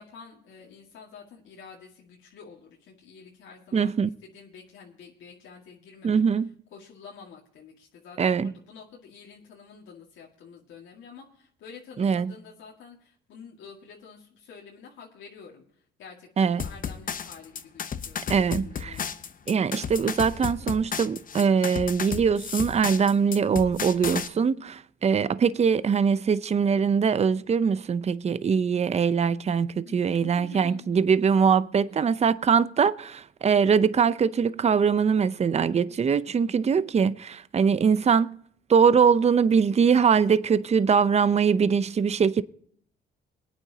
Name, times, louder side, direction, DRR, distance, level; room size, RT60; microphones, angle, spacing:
voice 1, 0.0-3.9 4.2-6.2 6.7-19.0 29.8-30.9 31.9-32.2, left 6 dB, 80° left, 1.9 m, -48 dB
voice 2, 3.7-4.1 6.0-6.5 8.2-8.5 12.0-12.3 16.4-16.6 18.3-19.0 19.5-38.4 38.7-42.4, right 6 dB, 35° right, 0.6 m, -22 dB
sound 1, 16.6-24.3, left 7 dB, 45° left, 0.9 m, -33 dB
22.0 x 9.2 x 2.8 m
cardioid pair, 90°, 20 cm